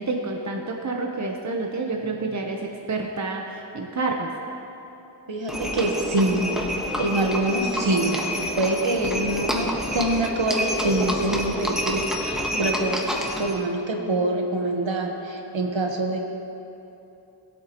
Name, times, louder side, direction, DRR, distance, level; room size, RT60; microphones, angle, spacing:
voice 1, 0.0-4.3, right 3 dB, 40° right, 1 dB, 1.0 m, -29 dB
voice 2, 5.3-13.0 13.4-16.2, right 2 dB, 85° right, 2 dB, 1.3 m, -25 dB
Livestock farm animals working animals, 5.5-13.6, equal, ahead, 1.4 m, -28 dB
20.0 x 8.3 x 3.0 m, 2.9 s
wide cardioid pair, 50°, 44 cm